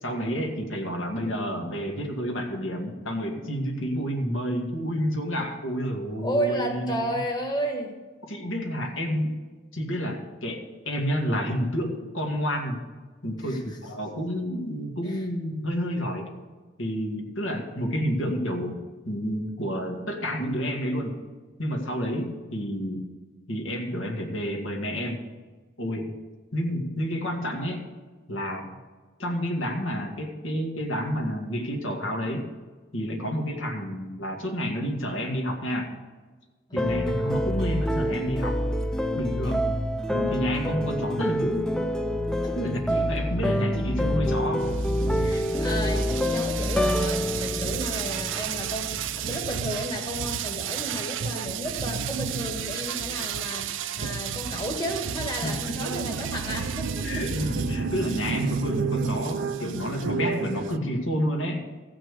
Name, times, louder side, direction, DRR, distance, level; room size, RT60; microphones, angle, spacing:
voice 1, 0.0-7.2 8.3-9.3 9.7-12.8 13.2-16.3 16.8-18.8 19.1-21.2 21.6-23.0 23.5-25.2 25.8-26.1 26.5-27.8 28.3-28.7 29.2-32.4 32.9-35.9 36.7-38.6 39.1-39.7 40.1-41.7 42.6-44.6 55.4-56.0 57.0-61.7, equal, 85° left, 1 dB, 2.2 m, -29 dB
voice 2, 6.2-8.0 13.4-13.8 15.0-15.2 36.7-37.3 42.4-42.6 45.2-57.2 58.4-58.5, equal, 20° left, 2 dB, 1.4 m, -33 dB
sound 1, 36.8-48.9, equal, 5° left, 0.4 m, -27 dB
sound 2, 44.6-60.8, right 6 dB, 70° right, 0.5 m, -31 dB
15.5 x 6.1 x 6.7 m, 1.3 s
head